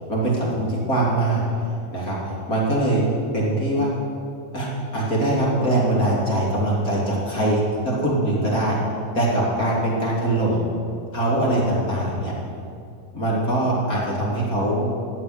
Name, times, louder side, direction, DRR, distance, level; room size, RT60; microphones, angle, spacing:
voice 1, 0.1-1.4 1.9-3.0 3.3-3.9 4.5-8.8 9.1-10.6 11.1-12.3 13.1-14.9, right 1 dB, 25° left, -5 dB, 3.1 m, -22 dB
14.0 x 7.9 x 9.6 m, 2.5 s
omnidirectional pair, 4.2 m